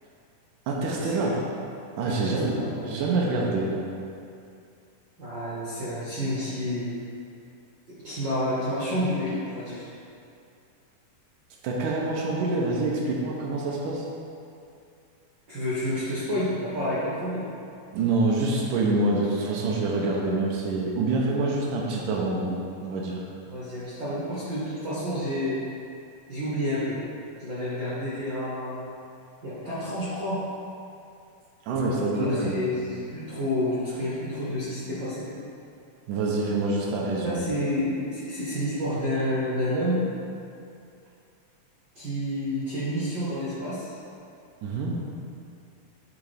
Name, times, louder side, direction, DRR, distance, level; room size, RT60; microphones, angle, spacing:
voice 1, 0.7-1.4 2.0-2.6 2.8-3.8 11.6-14.0 17.9-23.2 31.7-32.7 36.1-37.5 44.6-45.0, right 2 dB, 85° right, -2 dB, 2.2 m, -26 dB
voice 2, 2.0-2.9 5.2-6.9 7.9-9.9 15.5-17.5 23.5-25.6 26.3-27.0 27.4-28.8 29.4-30.5 32.0-35.3 37.2-40.1 41.9-43.8, left 1 dB, 65° right, -10 dB, 1.1 m, -29 dB
8.6 x 3.6 x 3.3 m, 2.5 s
omnidirectional pair, 3.6 m